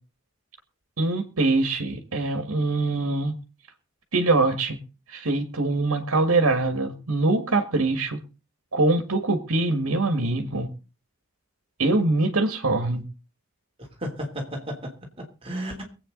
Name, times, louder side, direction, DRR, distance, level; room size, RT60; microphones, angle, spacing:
voice 1, 1.0-3.3 4.1-4.8 5.1-8.2 8.7-10.7 11.8-13.0, right 2 dB, 85° right, 7 dB, 1.8 m, -23 dB
voice 2, 13.8-15.8, equal, 25° right, 1 dB, 3.3 m, -34 dB
23.0 x 8.6 x 3.9 m, 0.33 s
head